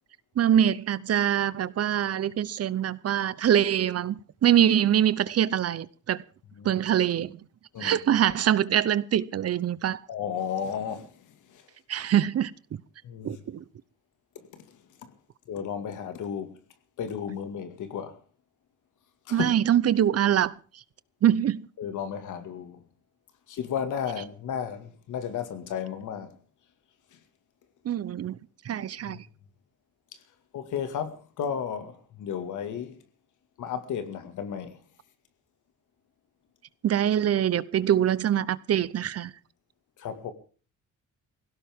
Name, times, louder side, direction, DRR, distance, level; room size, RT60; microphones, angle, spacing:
voice 1, 0.4-6.2 6.6-7.4 7.8-10.0 11.9-12.5 13.2-13.6 19.3-20.5 21.2-21.7 27.8-28.4 28.6-29.2 36.8-39.3, right 10 dB, 55° right, 0.8 m, -24 dB
voice 2, 10.1-11.1 11.5-11.6 13.0-13.4 14.5-14.6 15.0-15.1 15.5-16.5 17.0-18.2 19.3-19.5 21.8-22.8 23.5-26.3 29.1-29.2 30.5-33.0 33.6-34.8 40.0-40.3, left 8 dB, 80° left, 2.2 m, -33 dB
20.5 x 17.0 x 3.7 m
cardioid pair, 115°, 30 cm